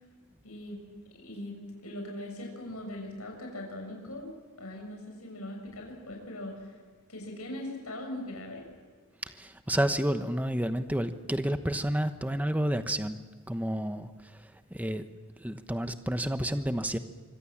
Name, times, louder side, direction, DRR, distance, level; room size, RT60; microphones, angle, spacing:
voice 1, 0.4-0.8 1.2-6.7 7.1-8.6, left 1 dB, 85° left, 2 dB, 6.9 m, -40 dB
voice 2, 9.4-13.2 13.5-14.1 14.7-15.0 15.4-17.0, right 1 dB, 5° right, 9 dB, 1.1 m, -30 dB
26.0 x 24.5 x 7.4 m, 1.5 s
head